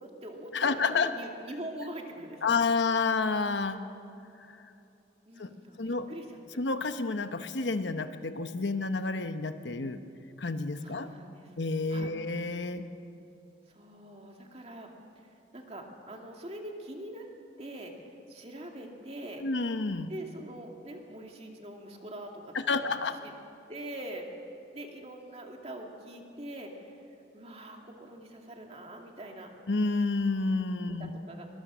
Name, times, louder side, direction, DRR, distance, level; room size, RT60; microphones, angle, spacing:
voice 1, 0.0-2.5 5.3-6.4 10.8-11.6 11.9-12.1 13.7-17.3 17.6-19.5 20.1-23.3 23.7-24.3 24.7-27.0 27.3-29.5 31.0-31.5, right 1 dB, 35° right, 1 dB, 2.3 m, -43 dB
voice 2, 0.5-1.1 2.4-3.8 4.5-4.6 5.4-5.5 5.8-6.1 6.6-10.0 10.4-11.1 11.6-12.9 19.4-20.1 22.7-23.2 29.7-31.1, left 4 dB, 75° left, 9 dB, 1.0 m, -29 dB
23.0 x 21.5 x 6.2 m, 2.8 s
head